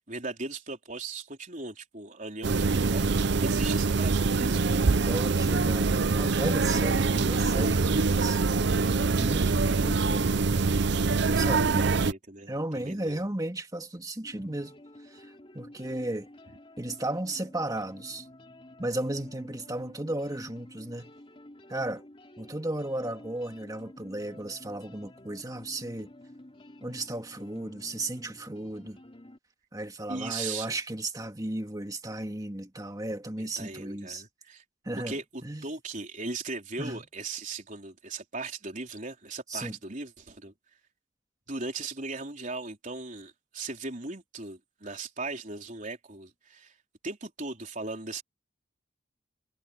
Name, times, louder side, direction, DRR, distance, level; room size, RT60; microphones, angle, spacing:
voice 1, 0.1-3.1 3.4-4.8 11.6-13.3 30.1-30.8 33.4-34.6 35.1-40.5 41.5-46.7 47.0-48.2, right 3 dB, 40° right, 4.1 m, -38 dB
sound 1, 2.4-12.1, right 4 dB, 60° right, 0.6 m, -24 dB
voice 2, 5.1-8.4 9.1-10.4 11.3-11.9 12.5-14.8 15.1-15.3 15.5-16.3 16.8-18.3 18.8-21.1 21.7-22.0 22.4-26.1 26.8-29.0 29.7-34.2 34.8-35.7 36.8-37.0 39.5-39.8, right 1 dB, 20° right, 2.1 m, -35 dB
sound 2, 14.2-29.4, left 1 dB, 30° left, 2.6 m, -51 dB
head